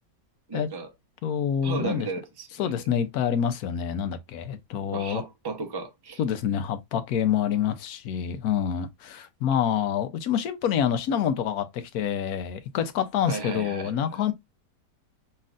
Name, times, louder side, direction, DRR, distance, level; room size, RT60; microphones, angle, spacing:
voice 1, 0.5-0.9 1.6-2.7 4.9-6.2 13.3-14.2, right 4 dB, 20° right, 0.7 m, -35 dB
voice 2, 1.2-2.1 2.6-5.2 6.2-14.3, left 8 dB, 65° left, 1.1 m, -27 dB
5.5 x 3.2 x 2.5 m
omnidirectional pair, 1.8 m